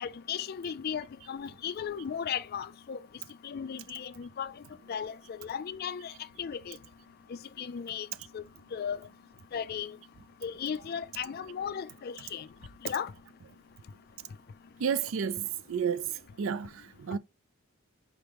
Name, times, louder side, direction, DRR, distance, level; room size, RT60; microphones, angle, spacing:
voice 1, 0.0-3.0 3.4-4.5 4.9-6.1 6.4-6.8 7.6-8.1 8.3-8.4 8.7-9.0 9.5-9.9 10.4-12.4 12.8-13.1, left 7 dB, 45° left, 0.3 m, -36 dB
voice 2, 14.8-16.1 16.4-17.2, right 7 dB, 65° right, 0.4 m, -31 dB
4.6 x 3.0 x 3.3 m
head